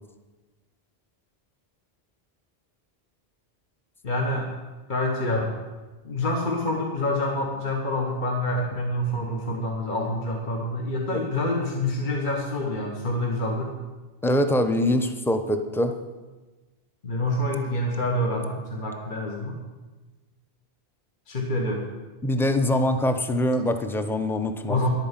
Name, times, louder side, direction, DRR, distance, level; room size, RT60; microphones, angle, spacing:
voice 1, 4.0-4.5 4.9-5.5 6.0-13.7 17.0-19.6 21.3-21.9 24.7-24.9, left 1 dB, 50° left, 0 dB, 1.5 m, -27 dB
voice 2, 14.2-15.9 22.2-24.8, left 1 dB, 5° left, 7 dB, 0.7 m, -23 dB
11.0 x 9.0 x 7.4 m, 1.2 s
omnidirectional pair, 1.1 m